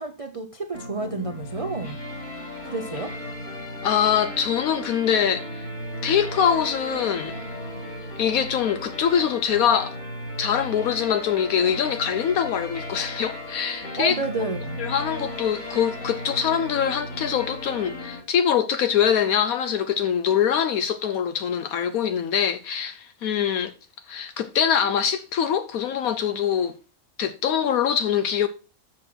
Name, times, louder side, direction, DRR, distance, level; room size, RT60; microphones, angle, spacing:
voice 1, 0.0-2.0 2.6-3.2 14.0-14.8, right 3 dB, 35° right, 0.6 m, -30 dB
sound 1, 0.7-18.2, left 1 dB, 55° left, 3.0 m, -36 dB
voice 2, 3.8-5.7 6.0-7.3 8.2-10.0 10.4-14.2 14.8-23.7 24.1-26.7 27.2-28.5, left 8 dB, 75° left, 1.1 m, -23 dB
7.7 x 6.2 x 5.9 m
omnidirectional pair, 1.5 m